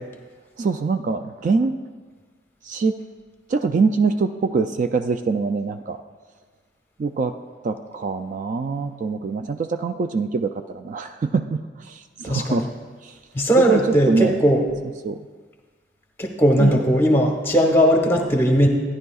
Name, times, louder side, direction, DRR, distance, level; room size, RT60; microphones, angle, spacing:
voice 1, 0.6-1.8 2.6-3.0 3.5-6.0 7.0-7.3 7.6-12.7 13.0-13.2 13.6-14.4 15.0-15.2 16.6-16.8, right 4 dB, 45° right, 8 dB, 0.3 m, -24 dB
voice 2, 12.3-12.7 13.3-14.6 16.2-18.7, equal, 15° left, 2 dB, 1.1 m, -18 dB
13.5 x 10.5 x 2.4 m, 1.5 s
head